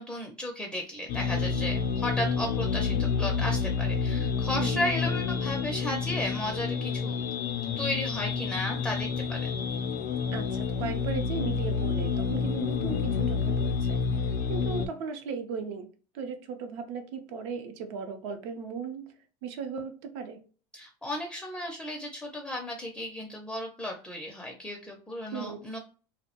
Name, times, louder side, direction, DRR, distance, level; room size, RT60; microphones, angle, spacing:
voice 1, 0.0-7.2 7.8-9.5 20.7-25.8, left 1 dB, 5° left, 1 dB, 0.4 m, -34 dB
sound 1, 1.1-14.9, left 5 dB, 65° left, 0.4 m, -29 dB
voice 2, 10.3-15.9 16.1-19.1 19.4-20.4 25.3-25.6, right 5 dB, 75° right, 6 dB, 0.6 m, -37 dB
2.2 x 2.0 x 2.8 m, 0.37 s
supercardioid pair, 110°, 14 cm